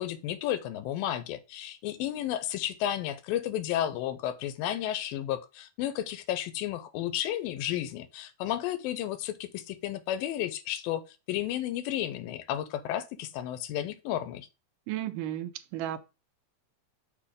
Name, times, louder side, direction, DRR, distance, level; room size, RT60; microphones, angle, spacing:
voice 1, 0.0-14.5, left 12 dB, 90° left, 2.4 m, -32 dB
voice 2, 14.9-16.0, right 12 dB, 80° right, 2.0 m, -34 dB
6.9 x 2.8 x 5.0 m
omnidirectional pair, 4.0 m